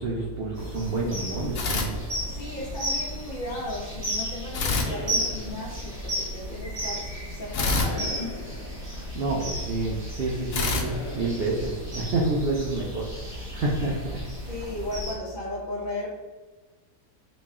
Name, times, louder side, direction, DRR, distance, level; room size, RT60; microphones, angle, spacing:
voice 1, 0.0-1.9 9.0-14.5, right 2 dB, 75° right, -3 dB, 0.5 m, -29 dB
sound 1, 0.5-15.1, equal, 30° right, 0.9 m, -34 dB
sound 2, 1.5-2.7 4.5-5.9 7.5-9.2 10.5-12.1, left 3 dB, 75° left, 1.2 m, -29 dB
voice 2, 2.2-8.8 14.5-16.1, left 1 dB, 55° left, -4 dB, 0.6 m, -36 dB
4.1 x 2.1 x 3.6 m, 1.3 s
omnidirectional pair, 1.7 m